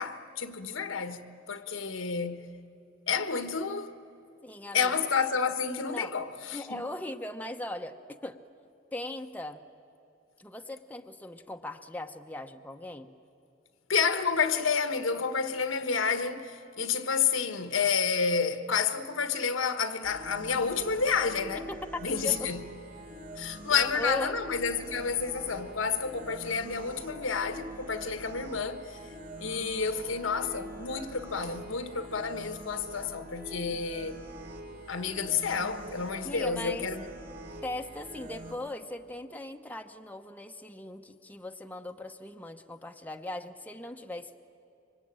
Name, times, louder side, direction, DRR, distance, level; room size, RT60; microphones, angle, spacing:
voice 1, 0.0-2.4 3.1-4.0 4.7-6.9 13.9-21.7 22.0-22.6 23.4-29.0 29.4-34.2 34.9-37.0, left 5 dB, 75° left, 1.4 m, -30 dB
voice 2, 4.4-4.9 5.9-6.1 6.5-8.0 8.2-8.4 8.9-9.6 10.4-13.1 21.7-21.8 22.1-22.5 23.7-24.3 36.2-36.9 37.6-44.4, left 1 dB, 10° left, 0.9 m, -39 dB
sound 1, 20.0-38.5, right 1 dB, 50° right, 3.6 m, -44 dB
26.5 x 24.5 x 8.9 m
head